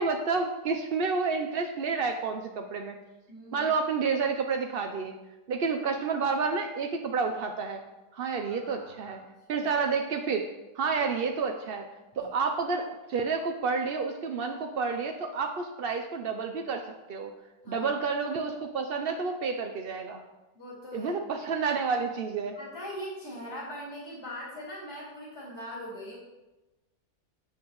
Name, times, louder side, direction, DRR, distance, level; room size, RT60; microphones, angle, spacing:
voice 1, 0.0-3.0 3.5-5.1 5.5-7.8 8.1-9.2 9.5-10.5 10.7-11.9 12.2-17.3 17.7-20.2 20.9-22.6, right 5 dB, 55° right, 4 dB, 0.6 m, -30 dB
voice 2, 3.3-3.7 8.4-9.2 9.6-9.9 12.1-12.3 17.6-17.9 20.5-21.2 22.5-26.2, equal, 40° left, -6 dB, 3.2 m, -41 dB
12.5 x 8.3 x 3.1 m, 1.1 s
omnidirectional pair, 1.7 m